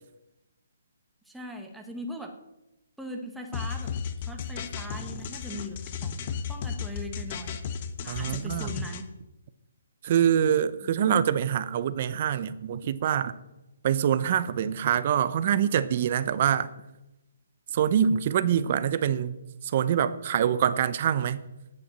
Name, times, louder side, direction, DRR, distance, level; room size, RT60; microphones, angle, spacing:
voice 1, 1.3-2.3 3.0-3.9 4.2-6.2 6.5-7.6 8.0-9.1 10.8-11.0, equal, ahead, 1.3 m, -40 dB
sound 1, 3.5-9.0, left 7 dB, 40° left, 1.1 m, -34 dB
voice 2, 8.1-8.7 10.0-13.3 13.8-16.7 17.7-19.3 19.6-21.4, right 9 dB, 40° right, 0.7 m, -25 dB
9.2 x 8.3 x 7.6 m
hypercardioid pair, 155°, 0 cm